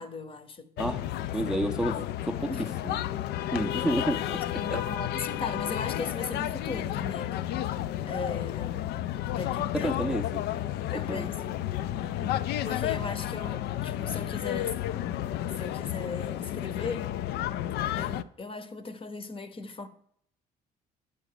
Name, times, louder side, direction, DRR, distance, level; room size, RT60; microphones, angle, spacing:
voice 1, 0.0-0.7 1.4-1.5 2.5-2.7 4.5-7.4 8.1-8.9 9.3-9.9 10.9-11.6 12.6-15.2 15.6-17.1 18.0-19.9, left 4 dB, 30° left, 0.8 m, -38 dB
sound 1, 0.8-18.2, left 12 dB, 75° left, 0.4 m, -32 dB
voice 2, 0.8-2.5 2.8-3.0 3.5-4.4 4.7-4.8 9.7-10.4 11.1-11.3 12.2-12.4, right 1 dB, 5° right, 0.5 m, -30 dB
9.0 x 4.9 x 6.6 m
cardioid pair, 110°, 17 cm